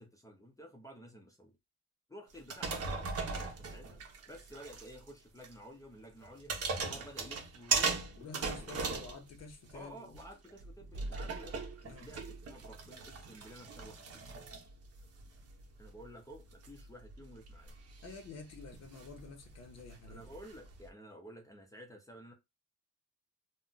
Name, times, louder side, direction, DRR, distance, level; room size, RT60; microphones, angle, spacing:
voice 1, 0.0-1.6 2.1-4.0 4.3-7.9 8.2-9.0 9.7-11.5 11.8-14.2 15.8-17.7 20.1-22.3, equal, 10° left, 0.4 m, -52 dB
sound 1, 2.4-5.1 5.4-5.5 6.2-9.8 10.1-20.9, right 4 dB, 50° right, 0.7 m, -39 dB
voice 2, 8.1-10.2 11.9-12.1 18.0-20.2, left 4 dB, 55° left, 0.7 m, -50 dB
2.4 x 2.1 x 3.7 m
wide cardioid pair, 170°, 32 cm